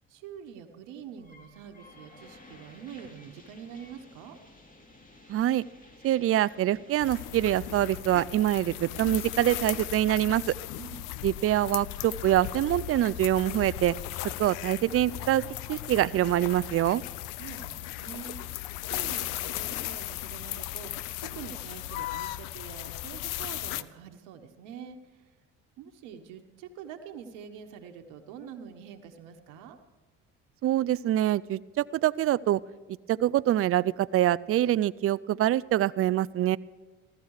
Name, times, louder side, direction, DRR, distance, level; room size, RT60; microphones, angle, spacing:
voice 1, 0.1-4.4 10.7-11.1 17.4-25.4 25.8-29.8, right 8 dB, 85° right, 5 dB, 1.3 m, -45 dB
sound 1, 1.2-7.9, left 2 dB, 25° left, 2.7 m, -54 dB
voice 2, 5.3-5.6 6.0-10.5 11.2-13.9 14.4-15.4 15.7-17.0 30.6-32.6 33.1-36.6, right 13 dB, 45° right, 18 dB, 0.5 m, -25 dB
sound 2, 7.0-23.8, left 15 dB, 85° left, 0.6 m, -37 dB
15.5 x 13.0 x 4.9 m, 1.4 s
supercardioid pair, 70°, 31 cm